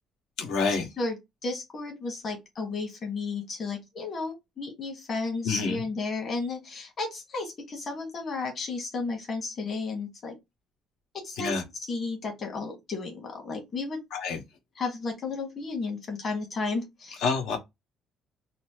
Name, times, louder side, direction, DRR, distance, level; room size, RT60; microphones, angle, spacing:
voice 1, 0.4-0.9 5.4-5.8 11.4-11.6 14.1-14.4 17.2-17.6, left 4 dB, 75° left, 1.3 m, -27 dB
voice 2, 1.4-10.3 11.2-11.6 11.9-14.0 14.7-17.2, left 3 dB, 30° left, 1.7 m, -33 dB
4.1 x 2.1 x 4.5 m
cardioid pair, 175°, 0 cm